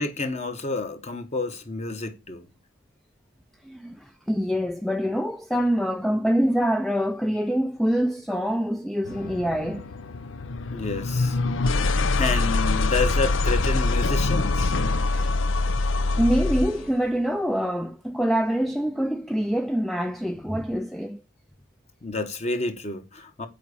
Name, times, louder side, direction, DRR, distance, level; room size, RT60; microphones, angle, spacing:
voice 1, 0.0-2.5 10.7-11.4 12.1-14.7 22.0-23.5, left 3 dB, 35° left, 1.4 m, -29 dB
voice 2, 3.6-9.9 15.1-15.4 16.1-21.2, equal, ahead, 0.4 m, -25 dB
sound 1, 9.0-16.9, left 3 dB, 75° left, 0.7 m, -24 dB
7.5 x 5.0 x 6.9 m
head